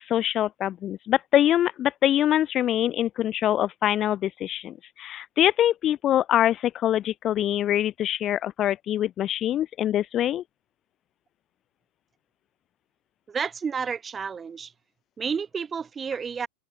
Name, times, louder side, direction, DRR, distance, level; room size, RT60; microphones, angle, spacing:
voice 1, 0.0-10.4, left 12 dB, 30° left, 0.8 m, -24 dB
voice 2, 13.3-14.7 15.2-16.5, right 6 dB, 20° right, 5.7 m, -30 dB
open air
figure-of-eight pair, 90°, 0 cm